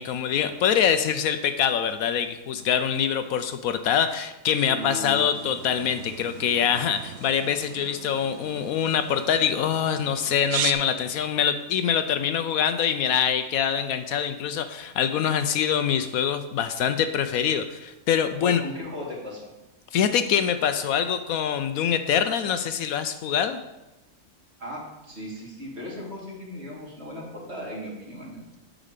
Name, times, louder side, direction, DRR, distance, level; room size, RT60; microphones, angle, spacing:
voice 1, 0.0-18.6 19.9-23.6, left 8 dB, 75° left, 9 dB, 1.0 m, -24 dB
voice 2, 4.7-5.2 18.4-19.5 24.6-28.4, equal, 45° right, -4 dB, 2.7 m, -37 dB
sound 1, 5.3-10.7, right 10 dB, 65° right, 0.7 m, -37 dB
8.9 x 5.0 x 6.6 m, 0.99 s
omnidirectional pair, 1.6 m